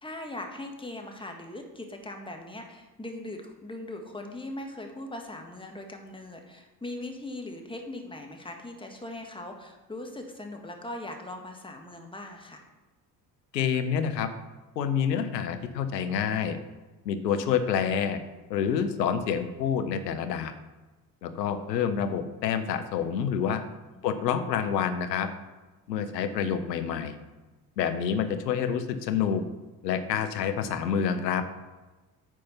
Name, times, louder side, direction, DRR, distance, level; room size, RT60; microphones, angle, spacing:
voice 1, 0.0-12.7 23.9-24.2, left 1 dB, 10° left, 3 dB, 1.6 m, -40 dB
voice 2, 13.5-14.3 14.8-16.6 17.0-18.2 18.5-20.5 21.2-23.6 24.0-25.3 25.9-27.2 27.8-29.4 29.8-31.4, left 7 dB, 80° left, 9 dB, 0.8 m, -28 dB
9.1 x 4.5 x 5.6 m, 1.2 s
figure-of-eight pair, 50°, 50 cm